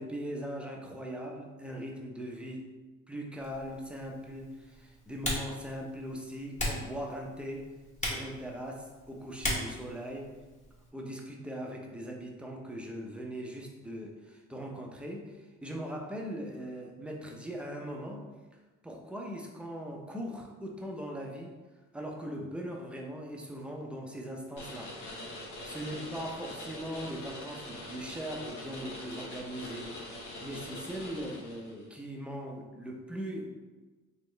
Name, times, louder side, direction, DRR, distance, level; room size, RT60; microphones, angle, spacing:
voice 1, 0.0-2.6 3.1-7.7 8.0-10.3 10.9-18.3 18.8-21.5 21.9-24.9 25.6-33.5, equal, 5° right, 0 dB, 0.7 m, -40 dB
Typing, 3.4-10.9, left 1 dB, 25° left, 1.3 m, -39 dB
sound 1, 24.6-31.8, left 1 dB, 85° left, 1.4 m, -43 dB
4.3 x 3.0 x 3.2 m, 1.2 s
cardioid pair, 90°, 30 cm